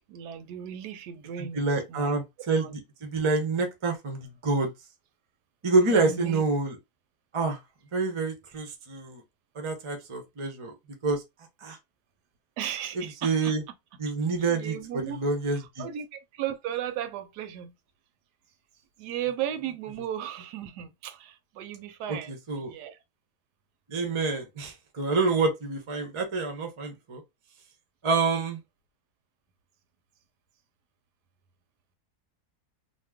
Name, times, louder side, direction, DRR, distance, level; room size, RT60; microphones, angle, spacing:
voice 1, 0.1-2.2 2.6-2.7 5.9-6.4 12.6-13.5 14.5-15.2 15.5-17.7 19.0-22.3 22.6-23.0, right 10 dB, 90° right, 1.2 m, -36 dB
voice 2, 1.4-4.7 5.6-6.8 7.3-7.6 7.9-9.2 9.5-10.7 11.0-11.2 11.6-11.8 12.9-13.6 14.0-15.9 19.7-20.0 22.1-22.7 23.9-27.2 28.0-28.6, right 3 dB, 50° right, 0.3 m, -27 dB
2.9 x 2.1 x 3.4 m
omnidirectional pair, 1.7 m